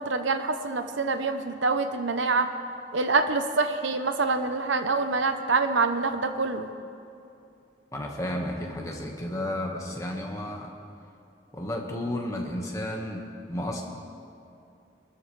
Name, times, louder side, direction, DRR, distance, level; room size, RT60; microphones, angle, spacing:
voice 1, 0.0-2.5 2.9-6.7, right 4 dB, 75° right, 8 dB, 0.9 m, -26 dB
voice 2, 7.9-10.7 11.5-13.2 13.5-13.8, left 1 dB, 15° left, 0 dB, 1.6 m, -32 dB
25.5 x 13.5 x 3.4 m, 2.6 s
head